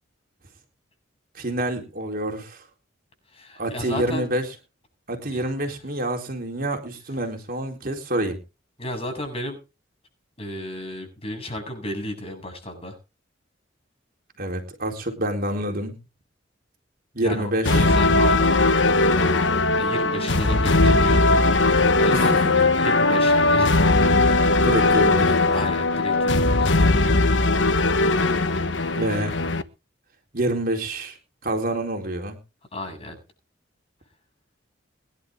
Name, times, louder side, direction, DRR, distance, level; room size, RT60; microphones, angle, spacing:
voice 1, 1.3-2.6 3.6-4.4 5.1-8.4 14.4-16.0 17.1-17.9 21.6-22.7 24.6-25.5 28.9-29.4 30.3-31.2 31.4-32.4, right 1 dB, 50° right, 3 dB, 4.1 m, -27 dB
voice 2, 3.3-4.3 5.3-5.4 5.7-5.8 8.8-9.6 10.4-13.0 17.2-18.5 19.7-21.4 22.0-22.3 22.7-23.9 24.2-24.6 25.5-26.7 32.7-33.2, left 1 dB, 30° left, 5 dB, 7.9 m, -33 dB
sound 1, 17.6-29.6, left 2 dB, 70° left, 1.3 m, -19 dB
23.0 x 11.5 x 3.8 m, 0.31 s
head